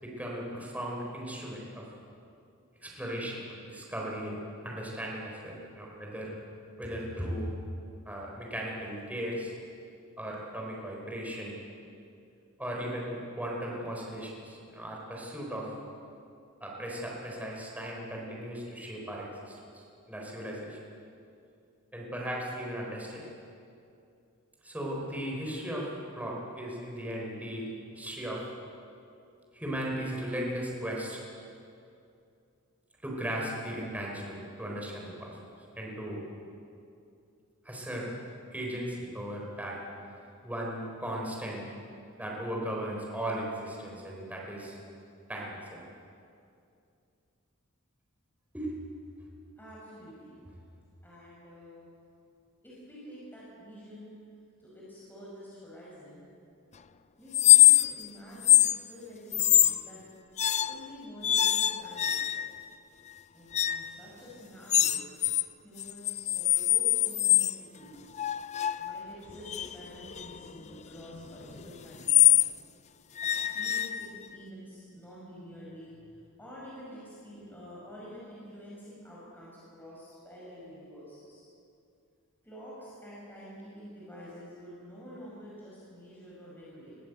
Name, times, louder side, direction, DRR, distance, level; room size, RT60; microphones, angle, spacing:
voice 1, 0.0-1.8 2.8-4.4 4.6-6.3 6.8-7.5 8.0-9.5 10.2-11.6 12.6-15.7 16.6-20.8 21.9-23.3 24.6-25.9 26.2-28.4 29.5-31.2 33.0-35.3 35.8-36.2 37.6-38.1 38.5-39.8 40.4-41.6 42.2-44.8 45.3-45.8 48.5-48.7 49.2-49.3, equal, 5° right, -3 dB, 4.4 m, -37 dB
voice 2, 49.6-50.5 51.0-51.9 52.6-54.2 54.6-56.2 57.2-60.0 60.6-62.5 63.3-65.0 65.6-68.0 68.8-72.5 73.3-81.4 82.4-87.0, equal, 10° left, -7 dB, 5.4 m, -48 dB
sound 1, 57.3-58.1 58.4-58.8 59.3-59.8 60.4-60.9 61.2-62.6 63.5-63.9 64.7-65.5 65.8-67.6 68.2-72.5 73.2-74.4, left 12 dB, 35° left, 0.5 m, -24 dB
21.5 x 16.5 x 8.3 m, 2.5 s
head